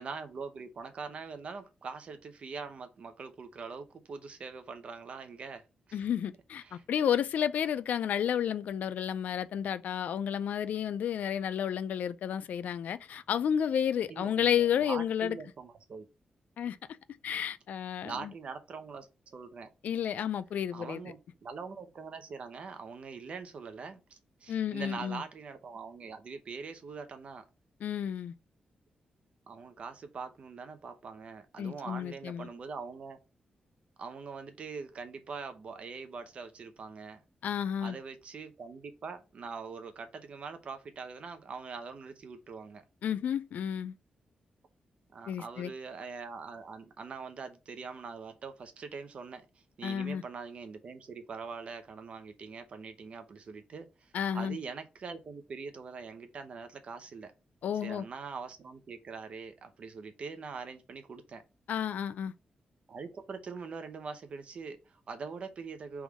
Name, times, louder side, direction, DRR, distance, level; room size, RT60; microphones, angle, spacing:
voice 1, 0.0-6.0 6.6-6.8 14.1-16.1 18.0-19.7 20.7-27.4 29.5-33.2 34.0-37.2 37.8-42.8 45.1-49.4 49.8-57.3 57.8-61.4 62.9-66.0, right 5 dB, 50° right, 0.7 m, -43 dB
voice 2, 5.9-15.4 16.6-16.8 17.2-18.3 19.8-21.0 24.5-25.2 27.8-28.3 31.6-32.5 37.4-38.0 43.0-43.9 45.3-45.7 49.8-50.2 54.1-54.6 57.6-58.0 61.7-62.3, left 9 dB, 80° left, 0.4 m, -31 dB
3.5 x 3.1 x 4.7 m
wide cardioid pair, 155°, 3 cm